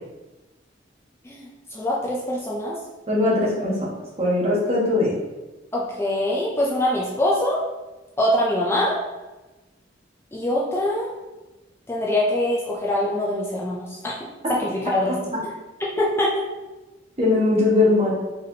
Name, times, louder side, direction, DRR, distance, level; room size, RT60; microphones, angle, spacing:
voice 1, 1.2-2.8 5.7-7.6 8.2-9.0 10.3-11.1 11.9-14.2 14.5-15.2 15.8-16.5, left 1 dB, 15° left, -4 dB, 0.4 m, -23 dB
voice 2, 3.1-3.9 4.2-5.1 15.1-15.2 17.2-18.1, left 2 dB, 35° right, -6 dB, 1.2 m, -20 dB
4.0 x 3.4 x 2.7 m, 1.1 s
head